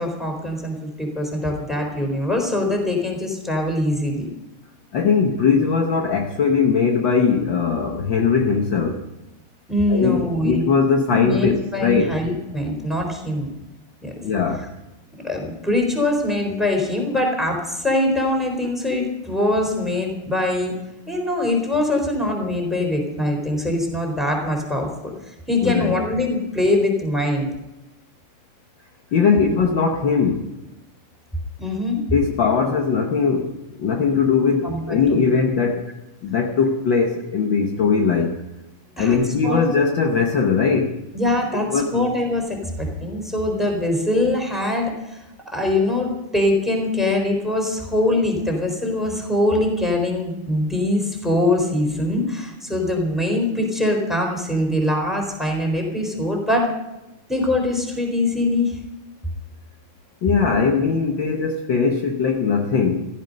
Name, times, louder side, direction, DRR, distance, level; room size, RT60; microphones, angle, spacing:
voice 1, 0.0-4.3 9.7-10.6 11.1-13.5 14.0-14.1 15.2-20.7 21.1-27.5 31.6-32.0 34.6-35.2 39.0-39.2 39.4-39.6 41.1-45.2 45.5-56.7 57.3-58.8, left 1 dB, ahead, 1 dB, 3.8 m, -23 dB
voice 2, 4.9-9.0 9.9-12.2 14.2-14.7 25.6-25.9 29.1-30.5 32.1-35.8 36.2-38.4 39.0-41.0 41.7-42.1 60.2-63.1, left 5 dB, 65° left, 2 dB, 1.2 m, -20 dB
16.0 x 15.0 x 5.4 m, 0.99 s
omnidirectional pair, 3.8 m